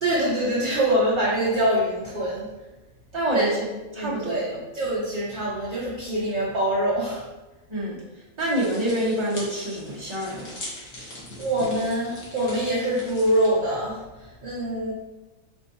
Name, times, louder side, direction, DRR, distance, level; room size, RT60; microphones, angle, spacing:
voice 1, 0.0-2.5 3.3-3.5 4.0-7.2 11.4-14.9, right 1 dB, 40° right, -6 dB, 0.9 m, -24 dB
voice 2, 3.1-3.5 3.9-4.6 7.7-8.0 8.4-10.5, right 1 dB, 20° right, -5 dB, 1.1 m, -26 dB
sound 1, 8.4-13.5, left 1 dB, 65° left, 1.6 m, -41 dB
4.5 x 4.2 x 2.8 m, 1.1 s
omnidirectional pair, 1.4 m